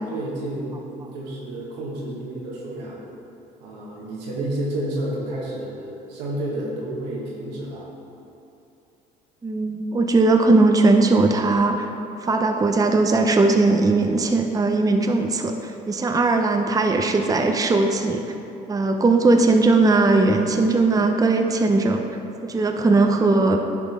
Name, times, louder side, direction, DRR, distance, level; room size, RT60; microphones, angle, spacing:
voice 1, 0.1-3.0 3.6-7.9, right 1 dB, 85° right, -5 dB, 1.4 m, -30 dB
voice 2, 9.4-11.9 12.2-18.2 18.7-22.0 22.4-23.6, right 3 dB, 15° right, 4 dB, 0.5 m, -19 dB
10.5 x 3.8 x 3.6 m, 2.8 s
hypercardioid pair, 60°, 21 cm